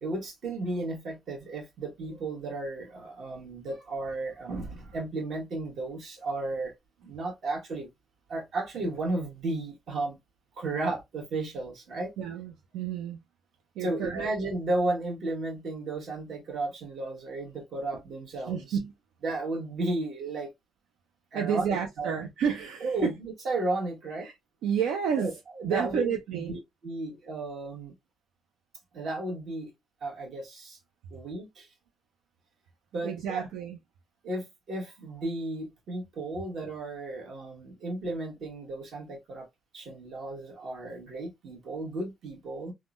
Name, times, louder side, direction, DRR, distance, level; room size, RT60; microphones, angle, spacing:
voice 1, 0.0-6.7 7.0-7.9 8.3-10.2 10.5-12.1 13.8-18.8 19.2-20.5 21.3-22.1 22.8-24.3 25.2-27.9 28.9-29.7 30.0-30.8 31.1-31.7 32.9-33.5 34.2-39.5 39.7-42.7, right 2 dB, 65° right, 1.3 m, -34 dB
voice 2, 12.2-13.2 13.8-14.3 18.5-18.9 21.3-23.1 24.2-24.3 24.6-25.3 25.6-26.5 33.0-33.8, right 7 dB, 90° right, 0.4 m, -30 dB
3.5 x 2.1 x 2.4 m
cardioid pair, 90°, 0 cm